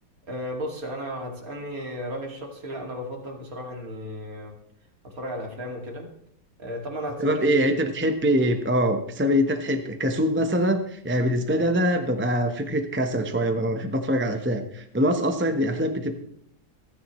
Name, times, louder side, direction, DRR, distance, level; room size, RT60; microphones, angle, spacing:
voice 1, 0.3-4.5 5.0-6.1 6.6-7.7, equal, 50° right, 1 dB, 2.9 m, -34 dB
voice 2, 7.2-16.1, equal, 10° right, 5 dB, 0.8 m, -24 dB
27.5 x 10.0 x 3.2 m, 0.69 s
omnidirectional pair, 2.0 m